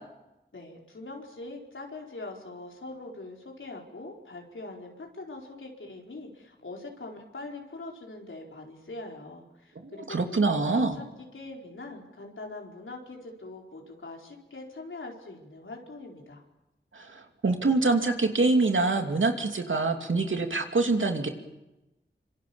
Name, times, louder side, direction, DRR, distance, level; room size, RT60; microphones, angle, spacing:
voice 1, 0.5-11.0 11.3-16.4, left 2 dB, 90° left, 0 dB, 4.6 m, -42 dB
voice 2, 9.8-10.9 16.9-17.1 17.4-21.3, right 3 dB, 85° right, 5 dB, 2.8 m, -25 dB
25.5 x 25.5 x 7.2 m, 0.96 s
wide cardioid pair, 45°, 20 cm